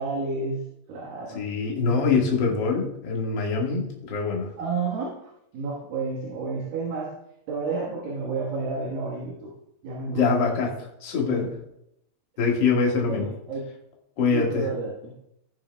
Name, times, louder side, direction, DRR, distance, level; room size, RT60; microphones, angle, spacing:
voice 1, 0.0-1.4 4.6-7.1 7.5-9.5 9.8-10.3 13.1-13.6 14.3-15.1, right 4 dB, 90° right, -4 dB, 3.2 m, -31 dB
voice 2, 1.3-4.5 10.1-11.5 12.4-13.3 14.2-14.7, left 4 dB, 45° left, -1 dB, 1.7 m, -24 dB
17.0 x 6.4 x 2.2 m, 0.80 s
omnidirectional pair, 4.0 m